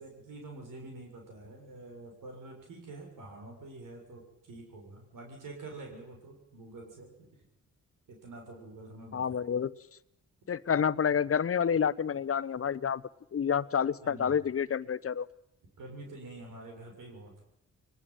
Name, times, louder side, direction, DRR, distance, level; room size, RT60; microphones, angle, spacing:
voice 1, 0.0-7.3 8.1-9.4 14.0-14.3 15.8-17.4, right 2 dB, 75° right, 1 dB, 7.2 m, -47 dB
voice 2, 9.1-9.7 10.5-13.0 13.3-15.3, left 7 dB, 45° left, 18 dB, 1.0 m, -29 dB
23.0 x 19.0 x 9.3 m, 0.79 s
cardioid pair, 60°, 32 cm